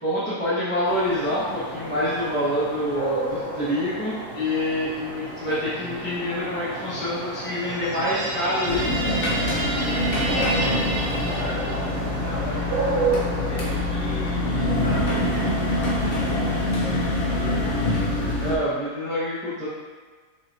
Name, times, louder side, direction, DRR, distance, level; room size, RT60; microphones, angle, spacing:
voice 1, 0.0-9.2 18.4-19.7, left 1 dB, 10° left, -13 dB, 0.9 m, -26 dB
sound 1, 0.8-16.6, right 2 dB, 50° right, 0.8 m, -32 dB
sound 2, 7.4-12.2, right 2 dB, 85° right, 1.3 m, -31 dB
sound 3, 8.7-18.6, left 1 dB, 55° left, 0.6 m, -25 dB
voice 2, 10.1-10.6 11.3-15.7 16.0-18.0, equal, 10° right, -8 dB, 0.4 m, -37 dB
5.4 x 2.9 x 2.7 m, 1.4 s
omnidirectional pair, 1.7 m